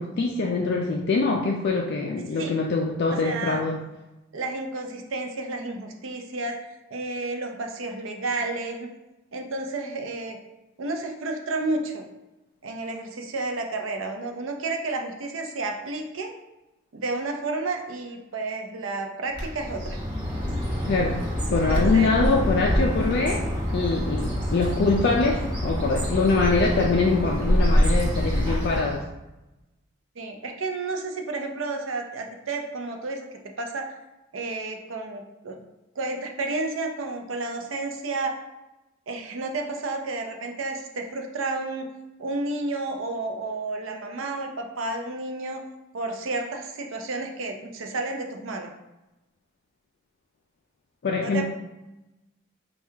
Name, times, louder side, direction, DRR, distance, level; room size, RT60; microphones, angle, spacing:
voice 1, 0.0-3.8 20.8-23.4 23.7-29.0 51.0-51.4, left 3 dB, 55° left, 0 dB, 0.3 m, -24 dB
voice 2, 3.1-3.6 4.3-6.6 6.9-8.9 9.3-10.4 10.8-12.1 12.6-16.3 16.9-20.0 21.7-22.1 30.2-33.9 34.3-35.6 36.0-38.4 39.1-41.9 42.2-45.6 45.9-48.7 51.2-51.4, right 3 dB, 70° right, 3 dB, 0.6 m, -31 dB
Bird, 19.3-29.0, equal, 20° right, 1.0 m, -26 dB
4.5 x 2.3 x 3.3 m, 0.99 s
head